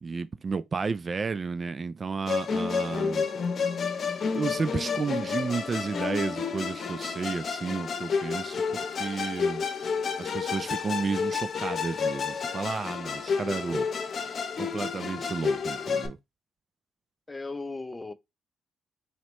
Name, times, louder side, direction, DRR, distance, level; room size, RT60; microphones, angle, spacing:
voice 1, 0.0-3.2 4.3-9.6 10.2-13.9 14.6-16.2, right 4 dB, 40° right, 0.3 m, -32 dB
Musical instrument, 2.3-16.1, left 5 dB, 50° left, 0.9 m, -30 dB
voice 2, 13.5-13.9 17.3-18.1, left 3 dB, 20° left, 0.5 m, -38 dB
4.2 x 2.8 x 3.0 m
cardioid pair, 75°, 0 cm